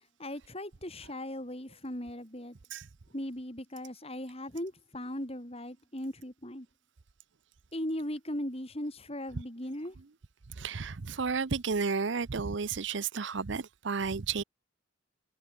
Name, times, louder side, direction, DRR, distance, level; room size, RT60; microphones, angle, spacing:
voice 1, 0.2-2.5 3.1-6.7 7.7-10.0, left 1 dB, 30° left, 5.1 m, -38 dB
voice 2, 10.6-14.4, right 5 dB, 60° right, 0.7 m, -32 dB
head